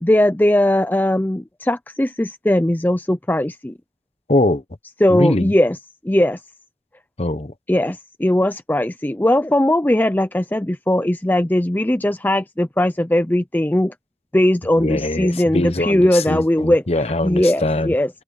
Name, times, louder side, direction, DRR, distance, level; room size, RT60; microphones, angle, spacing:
voice 1, 0.0-3.7 5.0-5.8 6.0-6.4 7.7-13.9 14.3-16.8 17.2-18.1, left 1 dB, 10° left, 0.5 m, -19 dB
voice 2, 4.3-4.6 5.1-5.5 7.2-7.5 14.8-17.9, left 2 dB, 35° left, 0.9 m, -22 dB
head